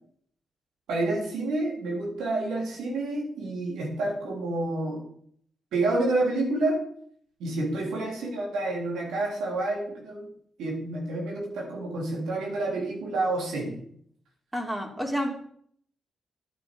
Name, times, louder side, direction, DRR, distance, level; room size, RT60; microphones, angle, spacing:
voice 1, 0.9-5.0 5.7-6.8 7.4-10.3 10.6-13.8, right 2 dB, 80° right, 0 dB, 3.2 m, -29 dB
voice 2, 14.5-15.3, equal, 15° right, 2 dB, 3.2 m, -29 dB
11.0 x 9.7 x 5.2 m, 0.63 s
supercardioid pair, 50°, 0 cm